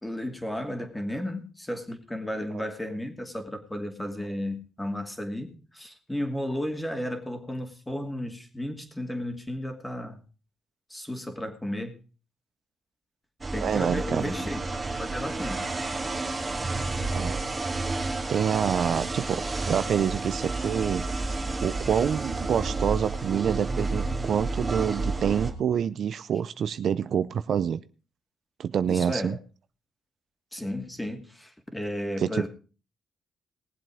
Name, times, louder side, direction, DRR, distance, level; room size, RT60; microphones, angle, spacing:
voice 1, 0.0-10.2 10.9-12.0 13.5-14.6 15.0-15.7 28.9-29.4 30.5-32.5, left 1 dB, 10° left, 6 dB, 2.6 m, -33 dB
sound 1, 13.4-25.5, right 3 dB, 20° right, 2.5 m, -31 dB
voice 2, 13.6-14.3 17.1-17.4 17.9-27.8 28.6-29.4 32.2-32.4, right 8 dB, 60° right, 14 dB, 0.6 m, -27 dB
19.5 x 7.7 x 4.9 m, 0.36 s
cardioid pair, 90°, 0 cm